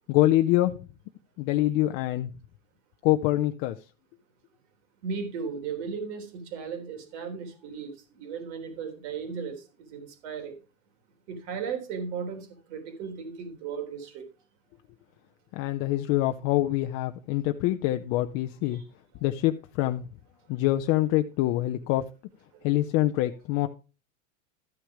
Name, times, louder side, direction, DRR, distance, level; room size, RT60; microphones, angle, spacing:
voice 1, 0.1-0.8 1.4-2.3 3.0-3.8 15.5-18.8 19.2-20.0 20.5-22.0 22.6-23.7, left 15 dB, 35° left, 7 dB, 0.5 m, -25 dB
voice 2, 5.0-10.6 11.3-14.3 18.7-18.8 22.5-22.7, right 6 dB, 60° right, 6 dB, 3.5 m, -36 dB
13.0 x 6.2 x 4.7 m, 0.33 s
supercardioid pair, 145°, 39 cm